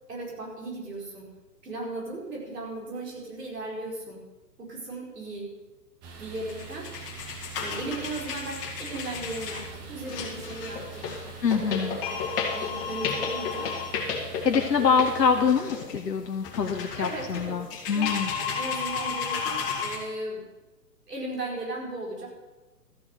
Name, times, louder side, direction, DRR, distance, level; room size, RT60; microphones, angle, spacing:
voice 1, 0.1-1.2 1.6-4.2 4.6-5.5 6.2-6.9 7.6-11.1 11.8-12.2 12.5-13.7 17.0-17.5 17.9-20.4 21.1-22.3, right 2 dB, 70° right, -2 dB, 4.9 m, -36 dB
sound 1, 6.0-15.6, right 6 dB, 10° right, 0.6 m, -44 dB
sound 2, 6.3-20.0, left 6 dB, 35° left, 2.4 m, -33 dB
voice 2, 11.4-12.0 14.4-18.3, left 6 dB, 75° left, 4 dB, 1.1 m, -25 dB
13.5 x 7.1 x 6.6 m, 1.1 s
figure-of-eight pair, 130°, 49 cm